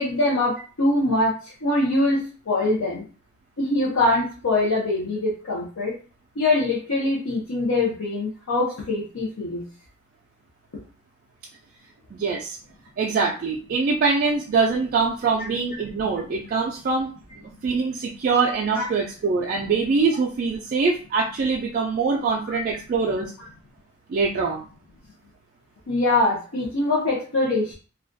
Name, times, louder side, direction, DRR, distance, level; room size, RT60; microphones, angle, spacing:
voice 1, 0.0-1.3 1.6-3.0 3.6-5.9 6.4-9.6 15.4-15.5 18.8-18.9 25.9-27.7, left 2 dB, 70° left, -5 dB, 0.6 m, -23 dB
voice 2, 12.1-12.6 13.0-17.1 17.6-23.3 24.1-24.6, right 4 dB, 40° right, -1 dB, 0.3 m, -23 dB
2.3 x 2.2 x 2.5 m, 0.37 s
head